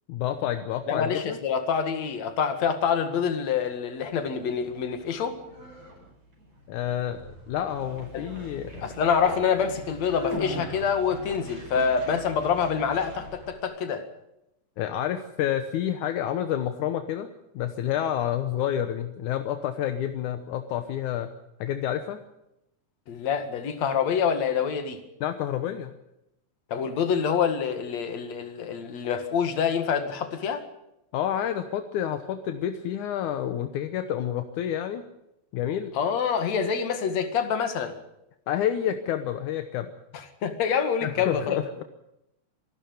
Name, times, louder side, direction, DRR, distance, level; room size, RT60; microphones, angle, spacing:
voice 1, 0.1-1.4 6.7-8.9 14.8-17.3 17.5-21.3 21.6-22.2 25.2-25.9 31.1-35.0 35.5-35.9 38.5-39.9 41.0-41.8, left 10 dB, 80° left, 8 dB, 2.5 m, -29 dB
voice 2, 0.9-5.4 8.1-8.3 8.8-14.0 23.1-25.0 26.7-30.6 35.9-38.0 40.1-41.6, left 7 dB, 65° left, 8 dB, 3.1 m, -26 dB
Conversation, 4.6-13.6, equal, 40° right, 5.8 m, -40 dB
25.5 x 12.5 x 9.4 m, 0.84 s
omnidirectional pair, 3.4 m